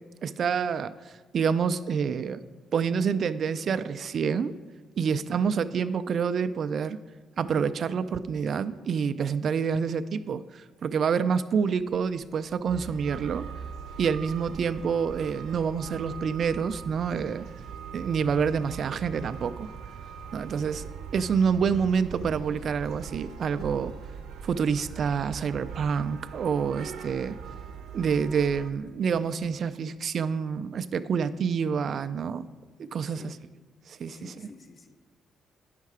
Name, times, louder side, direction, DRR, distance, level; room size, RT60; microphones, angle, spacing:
voice 1, 0.2-2.4 2.7-4.5 5.0-7.0 7.4-13.5 14.0-17.4 17.9-19.7 20.3-23.9 24.4-27.4 27.9-32.4 32.8-33.3 33.9-34.5, right 6 dB, 55° right, 12 dB, 0.3 m, -27 dB
voice 2, 5.1-5.5 33.1-33.5 34.1-35.0, left 3 dB, 40° left, 8 dB, 0.8 m, -50 dB
sound 1, 11.8-29.5, equal, 90° left, 1.5 m, -57 dB
sound 2, 12.7-28.7, right 7 dB, 75° right, 0.8 m, -41 dB
9.2 x 6.6 x 4.8 m, 1.5 s
cardioid pair, 90°, 0 cm